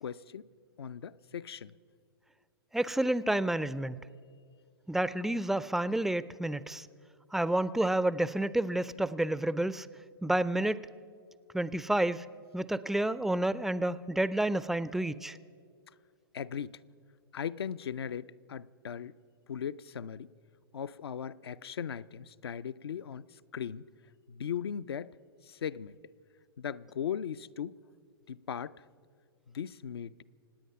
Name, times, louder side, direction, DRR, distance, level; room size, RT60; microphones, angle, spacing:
voice 1, 0.0-0.5 0.8-1.7 16.3-16.8 17.3-19.2 19.5-20.3 20.7-23.9 24.3-25.1 25.4-26.0 26.6-27.8 28.3-28.8 29.5-30.2, left 8 dB, 80° left, 0.5 m, -38 dB
voice 2, 2.7-4.0 4.9-6.9 7.3-9.9 10.2-10.8 11.5-12.3 12.5-15.4, right 1 dB, ahead, 0.3 m, -29 dB
26.0 x 9.3 x 5.6 m
hypercardioid pair, 115°, 13 cm